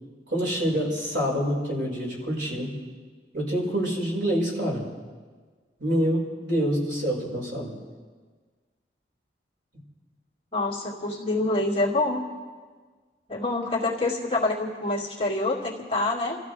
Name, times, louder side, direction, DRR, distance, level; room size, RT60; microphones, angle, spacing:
voice 1, 0.3-2.7 3.3-4.8 5.8-7.7, equal, 90° right, -3 dB, 5.3 m, -26 dB
voice 2, 10.5-12.2 13.3-16.4, left 2 dB, 30° left, -4 dB, 2.3 m, -26 dB
28.5 x 15.0 x 3.4 m, 1.5 s
head